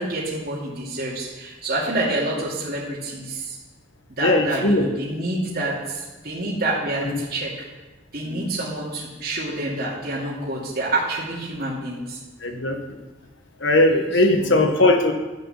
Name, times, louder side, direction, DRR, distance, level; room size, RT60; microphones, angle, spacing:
voice 1, 0.0-3.6 4.2-7.5 8.1-12.2 14.3-14.6, right 2 dB, 50° right, -7 dB, 2.6 m, -27 dB
voice 2, 4.2-4.9 7.0-7.1 8.2-8.5 12.4-12.8 13.6-15.1, left 2 dB, 70° left, 5 dB, 1.5 m, -19 dB
13.0 x 6.6 x 7.2 m, 1.2 s
head